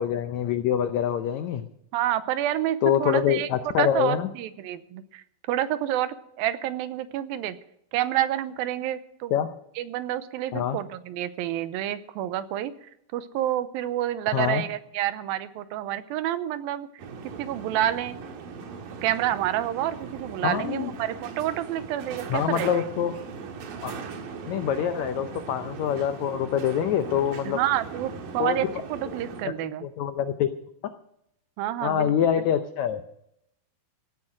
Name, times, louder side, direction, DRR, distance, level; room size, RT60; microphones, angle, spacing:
voice 1, 0.0-1.7 2.8-4.3 9.3-9.5 10.5-10.8 14.3-14.6 20.4-20.9 22.3-23.1 23.8-23.9 24.5-27.6 28.4-28.7 29.4-29.5 29.8-30.5 31.8-33.0, left 9 dB, 90° left, 9 dB, 1.6 m, -25 dB
voice 2, 1.9-3.5 3.8-7.6 7.9-9.3 9.8-12.7 13.1-16.9 17.4-18.2 19.0-22.8 27.5-29.9 31.6-32.1, right 12 dB, 85° right, 13 dB, 2.5 m, -28 dB
sound 1, 17.0-29.4, right 5 dB, 70° right, 3.1 m, -39 dB
16.5 x 9.8 x 6.5 m, 0.77 s
omnidirectional pair, 4.2 m